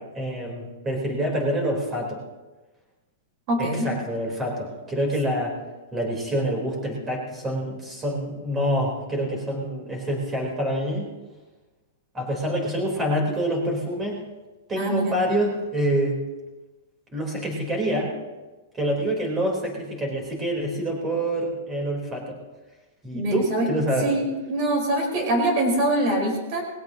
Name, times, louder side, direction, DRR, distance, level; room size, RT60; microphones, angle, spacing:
voice 1, 0.0-2.2 3.6-5.5 5.9-11.1 12.1-14.2 14.7-16.2 17.1-18.2 18.7-22.4 23.0-24.2, right 1 dB, 15° right, 0 dB, 4.2 m, -26 dB
voice 2, 3.5-3.9 14.7-15.1 23.1-23.7 24.0-24.2 24.5-26.6, right 1 dB, 40° right, 1 dB, 4.8 m, -24 dB
20.5 x 17.0 x 3.0 m, 1.2 s
hypercardioid pair, 155°, 0 cm